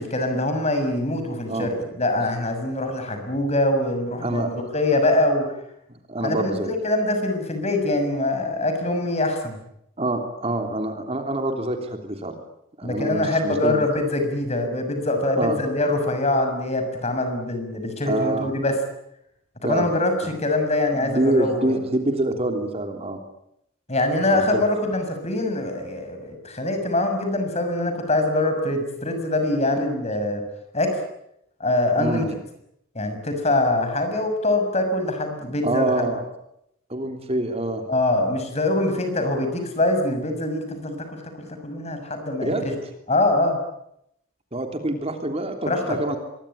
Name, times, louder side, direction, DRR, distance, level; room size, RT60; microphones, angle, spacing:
voice 1, 0.0-5.5 6.2-9.6 12.8-18.8 19.6-21.8 23.9-30.4 30.7-31.0 31.6-32.3 32.9-36.1 37.9-42.7 43.1-43.6 45.7-46.0, left 2 dB, 30° left, 6 dB, 6.6 m, -24 dB
voice 2, 4.2-4.5 5.9-6.7 10.0-12.4 12.8-13.8 15.4-15.6 18.0-18.5 19.6-19.9 21.0-23.2 24.3-24.6 32.0-32.2 35.6-36.2 36.9-37.8 42.4-42.7 44.5-46.2, right 1 dB, 30° right, 5 dB, 3.1 m, -26 dB
25.5 x 22.5 x 10.0 m, 0.78 s
head